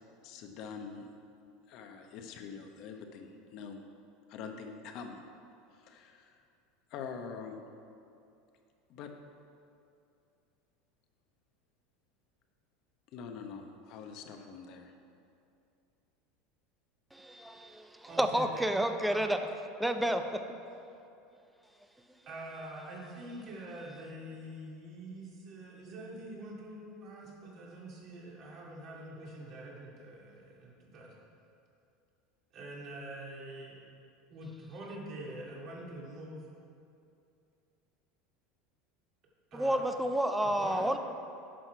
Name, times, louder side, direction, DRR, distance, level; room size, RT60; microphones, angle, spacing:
voice 1, 0.2-1.1 1.7-3.8 4.3-5.2 5.7-6.4 6.9-7.6 8.9-9.1 13.1-14.9, left 6 dB, 55° left, 4 dB, 0.9 m, -44 dB
voice 2, 17.1-19.4 19.8-20.2 39.5-41.0, right 1 dB, 5° right, 7 dB, 0.5 m, -30 dB
voice 3, 18.1-19.3 20.0-20.1 22.3-31.1 32.5-33.8 34.3-36.4 39.5-39.8 40.4-40.9, right 1 dB, 45° right, -3 dB, 2.2 m, -45 dB
10.0 x 6.4 x 4.6 m, 2.6 s
supercardioid pair, 125°, 0 cm